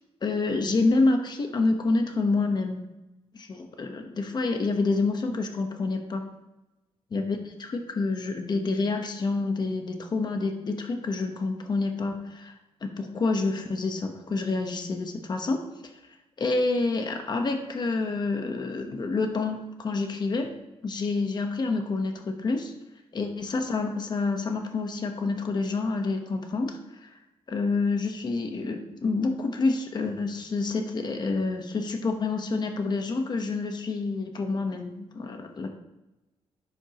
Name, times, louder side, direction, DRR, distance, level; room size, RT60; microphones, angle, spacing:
voice 1, 0.2-2.8 3.3-6.2 7.1-12.5 12.8-15.6 16.4-20.5 20.8-22.7 23.1-27.2 27.5-35.7, left 3 dB, 40° left, 5 dB, 1.1 m, -28 dB
10.5 x 8.0 x 3.0 m, 0.98 s
wide cardioid pair, 135°, 12 cm